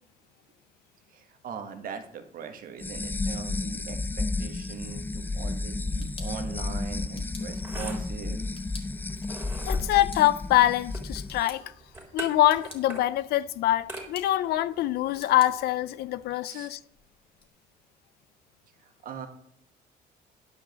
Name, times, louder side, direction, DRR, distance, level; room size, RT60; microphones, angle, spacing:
voice 1, 1.1-8.4 16.5-16.7 18.8-19.3, right 6 dB, 55° right, 1.4 m, -40 dB
sound 1, 2.8-11.4, left 3 dB, 10° left, 0.3 m, -32 dB
sound 2, 5.7-17.5, left 3 dB, 35° left, 2.0 m, -53 dB
sound 3, 6.6-16.3, right 2 dB, 10° right, 3.2 m, -44 dB
voice 2, 9.7-11.7 12.1-16.8, left 14 dB, 70° left, 0.5 m, -24 dB
9.9 x 5.3 x 6.8 m
cardioid pair, 110°, 17 cm